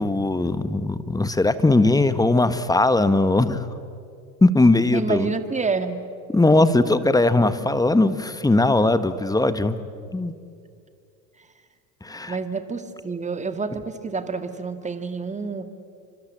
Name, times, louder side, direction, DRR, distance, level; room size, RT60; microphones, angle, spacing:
voice 1, 0.0-3.7 4.4-5.3 6.3-9.8 10.1-10.3 12.0-12.3, left 2 dB, 10° left, 12 dB, 1.4 m, -19 dB
voice 2, 4.9-6.0 12.3-15.7, right 4 dB, 15° right, 9 dB, 2.2 m, -28 dB
29.5 x 25.0 x 7.7 m, 2.4 s
hypercardioid pair, 80°, 45 cm